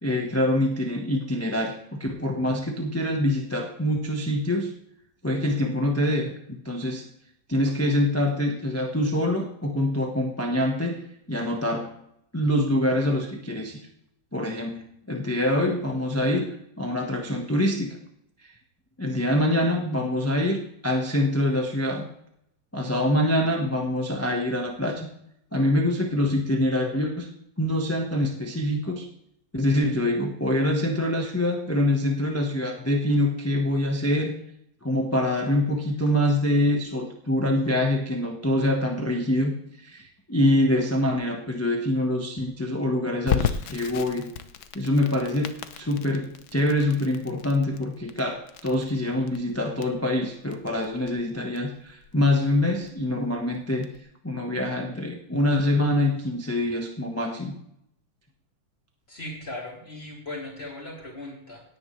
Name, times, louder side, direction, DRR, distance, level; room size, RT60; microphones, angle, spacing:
voice 1, 0.0-4.7 5.2-6.3 6.6-7.0 7.5-11.0 11.3-11.9 12.3-13.8 14.3-16.4 16.8-18.0 19.0-22.1 22.7-25.1 25.5-27.3 27.6-29.1 29.5-34.3 34.8-39.5 39.8-44.3 44.7-53.9 54.2-57.5, left 1 dB, 10° left, 1 dB, 0.8 m, -25 dB
Crackle, 43.3-54.0, left 8 dB, 60° left, 1.0 m, -35 dB
voice 2, 59.1-61.6, left 2 dB, 25° left, -2 dB, 3.1 m, -38 dB
18.0 x 9.7 x 3.3 m, 0.72 s
omnidirectional pair, 2.4 m